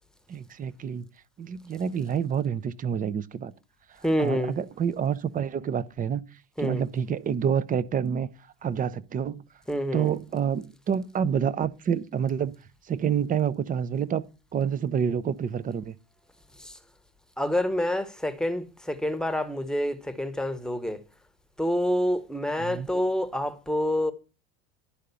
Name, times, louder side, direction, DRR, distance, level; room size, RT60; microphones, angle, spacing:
voice 1, 0.3-1.0 1.4-3.5 3.9-6.2 6.6-8.3 8.6-9.4 9.9-12.6 12.9-14.2 14.5-16.0 22.6-22.9, right 8 dB, 25° right, 0.6 m, -28 dB
voice 2, 4.0-4.5 6.6-6.8 9.7-10.1 16.6-16.8 17.4-21.0 21.6-24.1, left 1 dB, ahead, 1.1 m, -27 dB
11.0 x 3.8 x 6.9 m
supercardioid pair, 100°, 30 cm